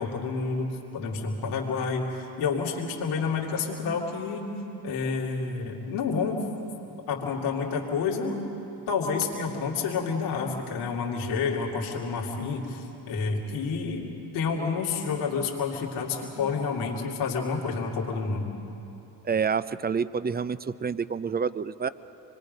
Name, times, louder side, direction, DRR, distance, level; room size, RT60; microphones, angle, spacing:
voice 1, 0.0-4.5 4.8-6.5 7.1-8.4 8.9-18.5, left 5 dB, 85° left, -2 dB, 2.5 m, -29 dB
voice 2, 19.2-21.9, right 6 dB, 20° right, 16 dB, 0.5 m, -28 dB
26.0 x 21.5 x 5.3 m, 2.9 s
supercardioid pair, 65°, 48 cm